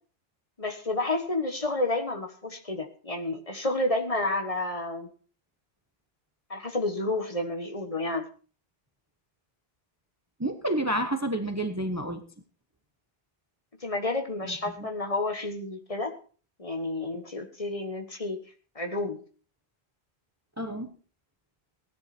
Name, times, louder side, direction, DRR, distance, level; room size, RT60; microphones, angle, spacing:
voice 1, 0.6-5.1 6.5-8.2 13.8-16.1 16.6-18.4 18.7-19.2, left 2 dB, 35° left, 4 dB, 1.6 m, -30 dB
voice 2, 10.4-12.2 14.4-14.5 14.8-14.9 20.6-20.9, right 1 dB, 15° right, 7 dB, 1.0 m, -29 dB
17.0 x 10.0 x 4.4 m, 0.40 s
omnidirectional pair, 1.1 m